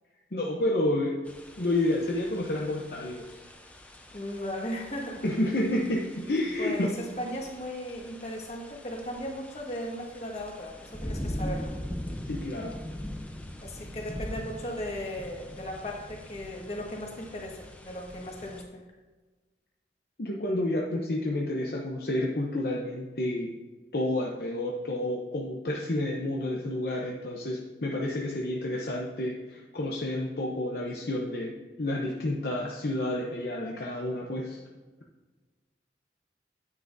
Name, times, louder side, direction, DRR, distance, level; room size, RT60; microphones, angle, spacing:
voice 1, 0.3-1.2 1.6-3.3 5.2-6.9 12.3-12.8 20.2-23.5 23.9-34.6, left 1 dB, 60° left, -2 dB, 0.8 m, -30 dB
sound 1, 1.3-18.6, equal, 10° left, 0.7 m, -41 dB
voice 2, 4.1-5.3 6.6-11.7 13.6-18.6, equal, 40° left, -1 dB, 1.6 m, -37 dB
9.7 x 9.4 x 2.7 m, 1.2 s
head